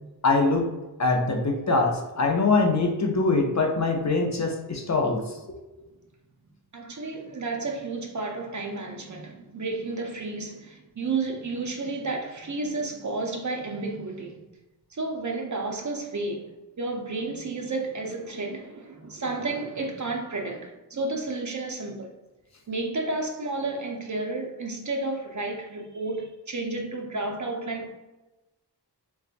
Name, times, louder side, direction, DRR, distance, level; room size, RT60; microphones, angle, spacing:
voice 1, 0.2-0.7 1.0-5.6, left 3 dB, 45° left, 0.6 m, -23 dB
voice 2, 6.7-14.4 14.9-16.5 16.8-22.1 22.7-27.9, right 3 dB, 45° right, 0.6 m, -31 dB
4.0 x 2.3 x 2.4 m
wide cardioid pair, 70°, 40 cm